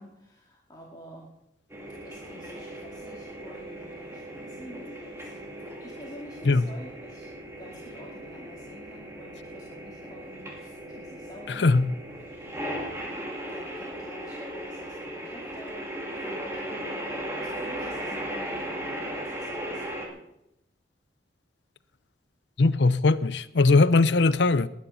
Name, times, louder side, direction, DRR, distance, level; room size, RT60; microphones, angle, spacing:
voice 1, 0.0-1.3 2.0-5.4 5.8-7.3 7.6-12.0 12.3-17.0 17.4-20.3, equal, 20° left, 2.2 m, -48 dB
sound 1, 1.7-20.1, right 1 dB, 15° right, 2.5 m, -37 dB
voice 2, 11.6-11.9 22.6-24.7, left 3 dB, 70° left, 0.7 m, -20 dB
20.0 x 9.7 x 5.7 m
head